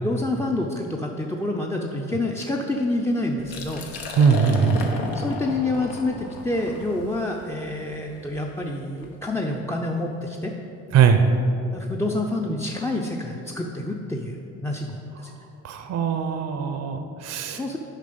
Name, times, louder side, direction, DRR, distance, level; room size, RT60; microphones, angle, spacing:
voice 1, 0.0-3.8 5.1-10.5 11.7-15.3 17.6-17.8, left 2 dB, 5° left, 0 dB, 0.6 m, -28 dB
Liquid, 3.4-9.1, left 3 dB, 70° left, 1.0 m, -35 dB
voice 2, 4.2-4.8 10.9-11.2 15.6-17.6, right 7 dB, 45° right, 7 dB, 0.6 m, -20 dB
7.4 x 5.2 x 5.1 m, 2.8 s
hypercardioid pair, 50°, 38 cm